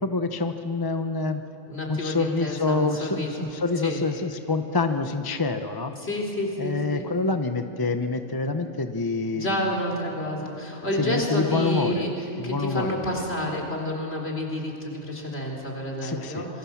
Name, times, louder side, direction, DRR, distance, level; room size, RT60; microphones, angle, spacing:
voice 1, 0.0-1.4 1.9-5.9 6.6-9.6 11.0-12.1 12.4-13.7 16.0-16.5, left 3 dB, 20° left, 7 dB, 0.7 m, -27 dB
voice 2, 1.7-3.3 3.8-4.0 6.0-7.1 9.3-16.6, left 1 dB, 45° left, 0 dB, 4.4 m, -29 dB
27.0 x 23.0 x 7.3 m, 2.9 s
omnidirectional pair, 1.5 m